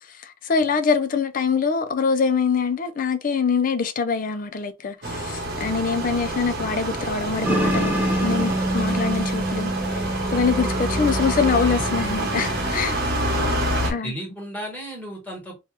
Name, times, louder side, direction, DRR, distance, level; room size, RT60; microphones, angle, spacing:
voice 1, 0.1-10.0 10.3-13.0 13.9-14.1, left 5 dB, 40° left, 0.4 m, -24 dB
sound 1, 5.0-13.9, right 1 dB, 50° right, 1.0 m, -27 dB
sound 2, 7.4-12.7, right 1 dB, 10° right, 0.6 m, -26 dB
voice 2, 11.4-11.9 13.2-13.5 13.8-15.6, equal, 10° left, 1.3 m, -35 dB
2.9 x 2.3 x 3.2 m
head